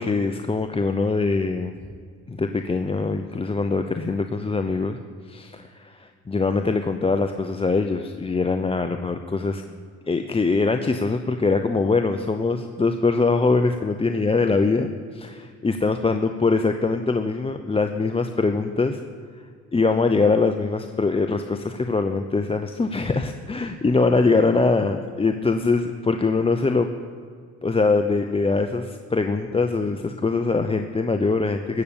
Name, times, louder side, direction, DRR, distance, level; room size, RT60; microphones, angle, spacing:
voice 1, 0.0-1.8 2.3-9.6 10.1-19.0 19.7-26.9 27.6-31.8, left 3 dB, 20° left, 6 dB, 0.7 m, -23 dB
16.0 x 7.0 x 8.6 m, 2.1 s
cardioid pair, 90°, 30 cm